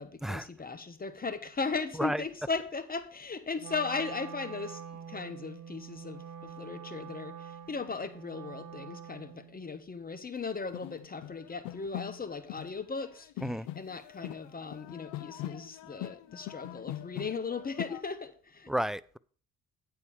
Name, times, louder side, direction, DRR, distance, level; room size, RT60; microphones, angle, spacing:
voice 1, 0.0-13.3 13.8-18.7, left 4 dB, 25° left, 1.1 m, -37 dB
Wind instrument woodwind instrument, 3.6-9.6, right 8 dB, 75° right, 1.3 m, -45 dB
sound 1, 10.4-10.5 10.7-12.7 13.0-18.0, left 14 dB, 80° left, 0.7 m, -42 dB
voice 2, 18.7-19.2, right 1 dB, ahead, 0.3 m, -31 dB
9.7 x 4.6 x 7.0 m
supercardioid pair, 70°, 33 cm